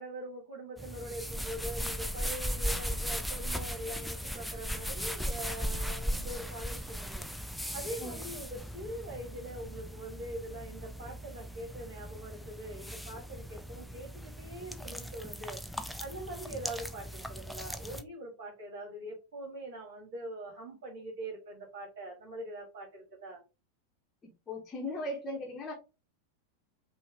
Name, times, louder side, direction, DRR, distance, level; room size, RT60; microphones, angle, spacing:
voice 1, 0.0-7.3 7.6-23.4, right 1 dB, 55° right, 1.7 m, -43 dB
sound 1, 0.8-18.0, equal, ahead, 0.4 m, -38 dB
voice 2, 24.5-25.7, left 1 dB, 20° left, 1.2 m, -37 dB
5.5 x 2.5 x 3.4 m
figure-of-eight pair, 90°, 0 cm